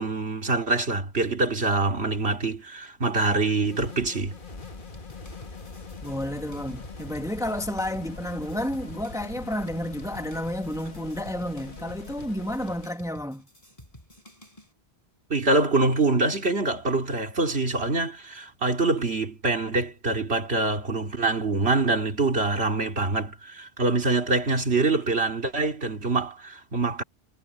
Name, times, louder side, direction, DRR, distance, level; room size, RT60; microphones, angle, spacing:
voice 1, 0.0-4.4 15.3-27.0, right 3 dB, 80° right, 2.9 m, -25 dB
sound 1, 3.6-13.0, left 4 dB, 55° left, 1.9 m, -42 dB
sound 2, 4.6-14.7, left 1 dB, 35° left, 8.2 m, -51 dB
voice 2, 6.0-13.5, left 1 dB, 5° right, 1.6 m, -31 dB
omnidirectional pair, 1.1 m